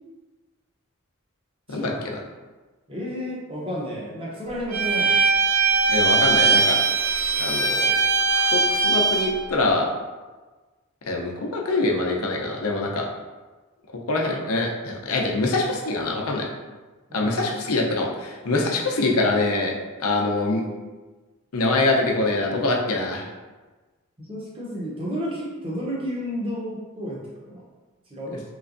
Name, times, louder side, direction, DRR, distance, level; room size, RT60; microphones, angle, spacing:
voice 1, 1.7-2.1 2.9-5.2 17.1-17.5 24.2-27.2 27.5-27.6 28.1-28.4, equal, 25° right, -4 dB, 0.7 m, -31 dB
Bowed string instrument, 4.7-9.3, right 4 dB, 75° right, 0.7 m, -20 dB
voice 2, 5.9-6.8 7.4-7.9 8.3-9.9 11.1-13.1 14.1-16.5 17.1-19.7 20.0-20.6 21.5-23.2, left 2 dB, 85° left, 0 dB, 0.6 m, -24 dB
3.3 x 3.1 x 2.5 m, 1.3 s
head